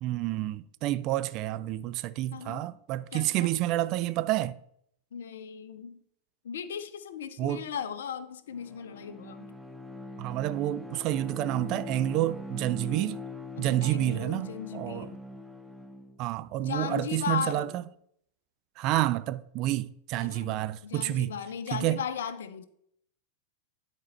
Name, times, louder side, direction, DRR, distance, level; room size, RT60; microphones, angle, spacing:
voice 1, 0.0-4.6 7.4-7.6 10.2-13.2 13.6-15.1 16.2-17.8 18.8-21.3 21.7-22.0, right 14 dB, 40° right, 0.3 m, -29 dB
voice 2, 2.3-2.7 3.1-3.5 5.1-6.0 6.4-9.5 13.6-15.2 16.6-17.8 20.2-22.7, left 7 dB, 60° left, 0.6 m, -37 dB
Bowed string instrument, 8.5-16.2, left 2 dB, ahead, 0.6 m, -42 dB
11.0 x 4.4 x 4.3 m
figure-of-eight pair, 90°, 0 cm